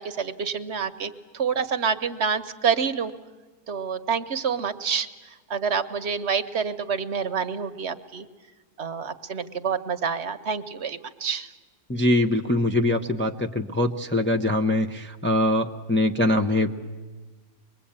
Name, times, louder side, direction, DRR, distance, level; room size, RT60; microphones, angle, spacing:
voice 1, 0.0-3.1 3.7-5.1 5.5-8.3 8.8-11.5, right 6 dB, 50° right, 9 dB, 1.1 m, -27 dB
voice 2, 11.9-16.7, left 1 dB, 10° left, 3 dB, 0.6 m, -23 dB
24.5 x 21.5 x 8.7 m, 1.3 s
omnidirectional pair, 1.5 m